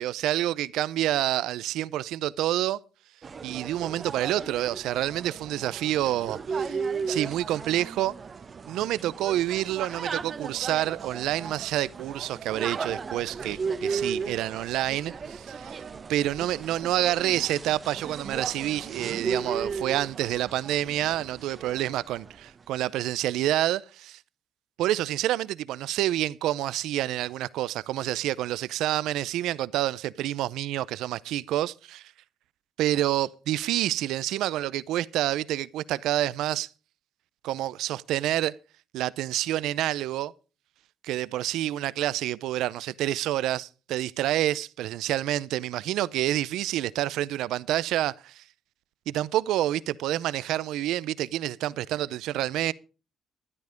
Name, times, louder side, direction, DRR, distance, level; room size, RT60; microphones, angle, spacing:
voice 1, 0.0-2.8 3.4-6.8 7.1-8.1 8.7-15.8 16.1-24.2 24.8-32.1 32.8-36.7 37.4-38.5 38.9-40.3 41.0-48.4 49.1-52.7, right 13 dB, 90° right, 0.5 m, -28 dB
sound 1, 3.2-22.5, right 5 dB, 40° right, 0.9 m, -36 dB
12.0 x 10.5 x 5.0 m
cardioid pair, 85°, 0 cm